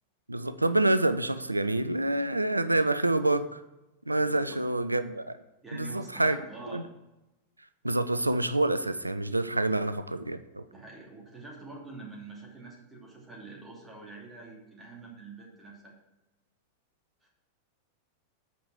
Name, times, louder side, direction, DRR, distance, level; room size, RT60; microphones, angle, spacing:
voice 1, 0.3-3.6 4.1-5.4 5.7-6.4 6.7-6.8 7.8-10.6, right 2 dB, 85° right, 12 dB, 0.4 m, -27 dB
voice 2, 4.2-4.6 5.6-6.8 10.7-15.9 17.2-17.3, right 3 dB, 15° right, -3 dB, 2.7 m, -46 dB
8.6 x 5.3 x 6.1 m, 0.98 s
figure-of-eight pair, 90°, 0 cm